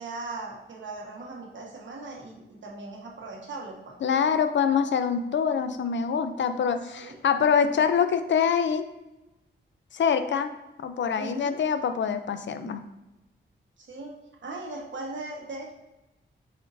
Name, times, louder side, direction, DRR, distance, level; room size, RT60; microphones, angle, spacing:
voice 1, 0.0-3.9 7.0-7.2 11.1-11.6 13.8-14.1 14.4-15.7, right 2 dB, 65° right, -2 dB, 1.3 m, -38 dB
voice 2, 4.0-8.8 9.9-10.5 10.8-12.8, left 7 dB, 65° left, 9 dB, 0.6 m, -25 dB
8.1 x 4.3 x 2.7 m, 1.0 s
wide cardioid pair, 105°, 20 cm